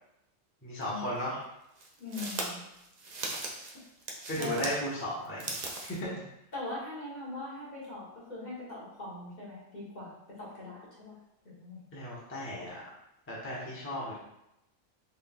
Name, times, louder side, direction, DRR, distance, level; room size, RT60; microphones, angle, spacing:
voice 1, 0.6-1.4 4.3-5.4 5.8-6.2 11.9-12.7 13.3-14.1, equal, 10° left, -7 dB, 0.8 m, -35 dB
sound 1, 0.8-0.9 1.8-4.8 5.2-6.0, right 2 dB, 75° right, 0.3 m, -38 dB
voice 2, 2.0-2.6 4.4-4.6 6.5-11.2 11.4-11.8, left 2 dB, 35° left, -7 dB, 1.1 m, -41 dB
3.9 x 3.6 x 2.3 m, 0.86 s
omnidirectional pair, 1.5 m